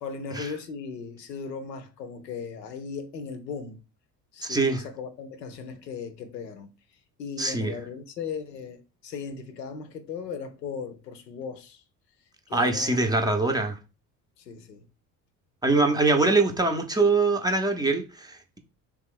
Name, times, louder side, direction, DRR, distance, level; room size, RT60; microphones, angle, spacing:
voice 1, 0.0-3.8 4.3-6.7 7.2-11.8 12.5-13.1 14.4-14.8, left 5 dB, 85° left, 0.6 m, -37 dB
voice 2, 4.4-4.8 7.4-7.7 12.5-13.8 15.6-18.6, right 3 dB, 10° right, 0.5 m, -23 dB
3.4 x 3.0 x 3.6 m
hypercardioid pair, 65°, 49 cm